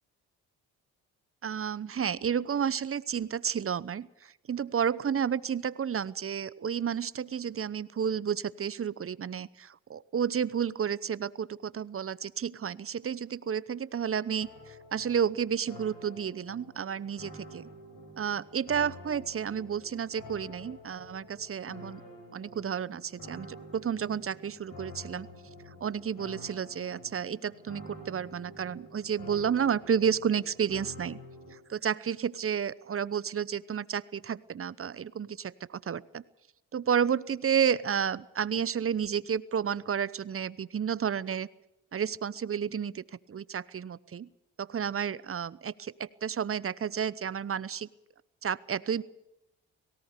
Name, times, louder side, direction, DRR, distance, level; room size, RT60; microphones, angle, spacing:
voice 1, 1.4-17.6 18.2-22.0 22.3-25.3 25.8-31.2 31.5-36.2 36.7-41.5 41.9-44.3 44.6-47.9 48.4-49.0, right 8 dB, 35° right, 19 dB, 0.9 m, -31 dB
sound 1, 14.4-31.5, left 1 dB, 65° left, 6.9 m, -49 dB
18.0 x 17.5 x 8.3 m, 0.89 s
supercardioid pair, 60°, 37 cm